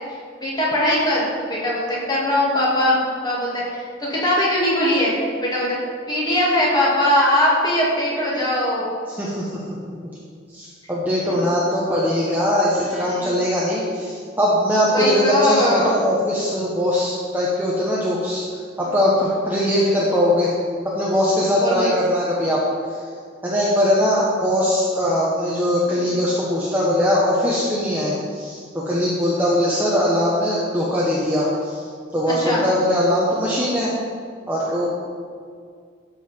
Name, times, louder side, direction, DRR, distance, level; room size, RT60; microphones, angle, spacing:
voice 1, 0.4-5.1 5.4-5.8 6.1-9.0 12.8-13.3 14.9-15.9 18.8-18.9 21.6-21.9 25.9-26.0 32.3-32.6, left 1 dB, 20° left, -6 dB, 2.5 m, -21 dB
voice 2, 9.1-9.8 10.5-18.4 18.8-20.5 20.8-22.6 22.9-23.0 23.4-33.9 34.5-34.9, equal, 10° right, -7 dB, 1.1 m, -21 dB
12.5 x 5.7 x 4.5 m, 2.1 s
head